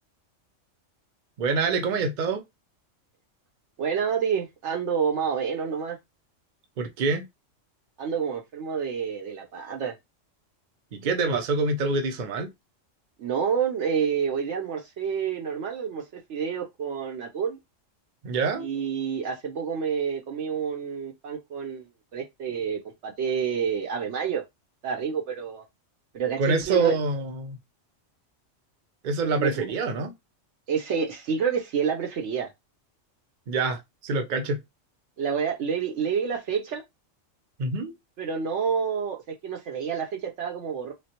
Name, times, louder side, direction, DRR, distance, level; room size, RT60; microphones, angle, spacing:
voice 1, 1.4-2.4 6.8-7.2 10.9-12.5 18.2-18.7 26.4-27.6 29.0-30.1 33.5-34.6 37.6-37.9, right 3 dB, 50° right, 0.6 m, -26 dB
voice 2, 3.8-6.0 8.0-9.9 13.2-17.6 18.6-24.4 24.8-25.6 26.1-27.0 29.4-29.7 30.7-32.5 35.2-36.8 38.2-40.9, right 7 dB, 70° right, 0.9 m, -28 dB
3.2 x 2.4 x 2.8 m
omnidirectional pair, 1.3 m